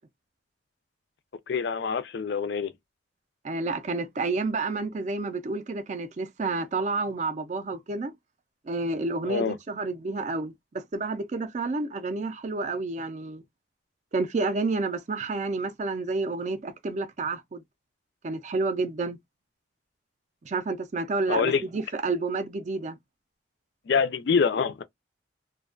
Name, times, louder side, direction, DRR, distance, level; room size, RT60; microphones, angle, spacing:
voice 1, 1.5-2.7 9.3-9.6 21.3-21.6 23.9-24.8, left 5 dB, 55° left, 0.3 m, -25 dB
voice 2, 3.4-8.1 8.7-13.4 14.1-17.6 18.2-19.2 20.4-23.0, right 3 dB, 35° right, 0.4 m, -30 dB
2.4 x 2.2 x 2.3 m
head